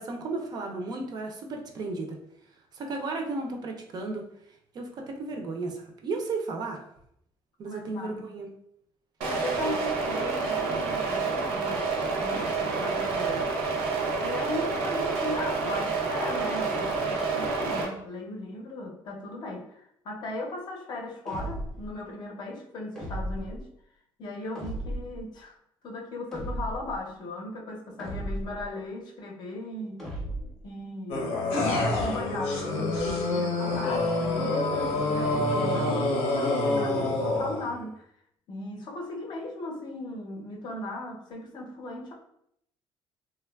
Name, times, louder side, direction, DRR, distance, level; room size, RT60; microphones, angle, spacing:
voice 1, 0.0-2.2 2.7-4.2 4.7-6.8 7.6-8.5 9.6-9.8 33.4-33.5, right 3 dB, 40° right, 2 dB, 0.4 m, -34 dB
voice 2, 7.6-8.3 9.2-11.9 12.2-13.6 14.2-23.7 24.2-25.6 25.8-30.1 30.6-31.3 31.7-38.0 38.5-42.1, left 2 dB, 45° left, 1 dB, 0.6 m, -37 dB
sound 1, 9.2-17.8, right 4 dB, 90° right, 0.6 m, -28 dB
sound 2, 21.3-21.9 23.0-23.6 24.5-25.2 26.3-26.9 28.0-28.7 30.0-30.6, right 1 dB, 5° left, 0.6 m, -35 dB
sound 3, 31.1-37.7, left 2 dB, 85° left, 0.7 m, -27 dB
3.0 x 2.2 x 2.2 m, 0.73 s
cardioid pair, 145°, 10 cm